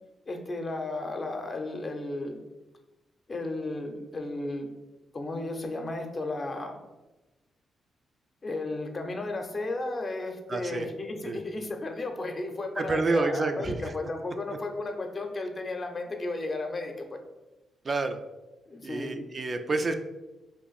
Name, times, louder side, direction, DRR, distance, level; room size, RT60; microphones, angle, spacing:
voice 1, 0.3-2.4 3.3-4.7 5.1-6.8 8.4-17.2 18.7-19.2, left 2 dB, 40° left, 4 dB, 0.6 m, -34 dB
voice 2, 10.5-10.9 11.3-11.4 12.8-13.8 17.9-18.2 18.8-19.9, right 3 dB, 45° right, 6 dB, 0.3 m, -28 dB
2.6 x 2.5 x 3.9 m, 1.1 s
supercardioid pair, 50°, 0 cm